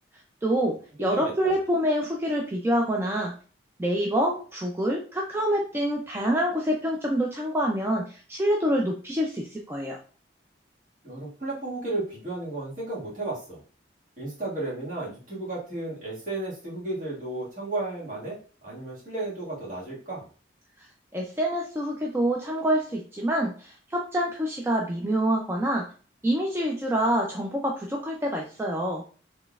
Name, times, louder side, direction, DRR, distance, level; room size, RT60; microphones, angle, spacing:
voice 1, 0.4-3.3 3.8-10.0 20.8-20.9 21.1-25.9 26.2-29.1, equal, 15° right, -1 dB, 0.4 m, -26 dB
voice 2, 1.0-1.5 11.0-13.6 14.2-18.4 18.6-20.3, right 2 dB, 45° right, -6 dB, 1.7 m, -33 dB
3.9 x 3.2 x 2.3 m, 0.39 s
head